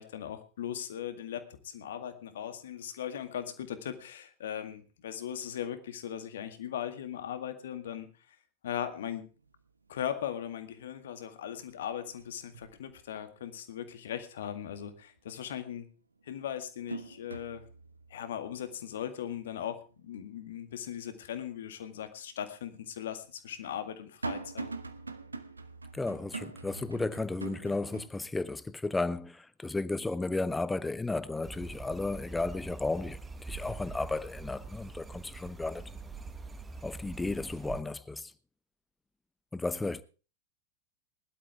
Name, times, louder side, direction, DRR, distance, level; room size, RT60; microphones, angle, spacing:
voice 1, 0.0-8.1 8.6-9.3 9.9-15.9 16.2-17.6 18.1-24.7, left 9 dB, 60° left, 2.0 m, -39 dB
sound 1, 9.4-9.9 10.3-11.1 11.4-13.7 14.1-14.2 15.6-15.7 16.2-21.4 21.8-21.9 22.8-28.1, right 3 dB, 80° right, 1.1 m, -44 dB
voice 2, 25.9-35.9 36.8-38.3 39.5-40.0, left 3 dB, 10° left, 0.8 m, -34 dB
sound 2, 31.4-37.8, right 4 dB, 10° right, 1.4 m, -44 dB
20.0 x 12.0 x 3.5 m
figure-of-eight pair, 90°, 0 cm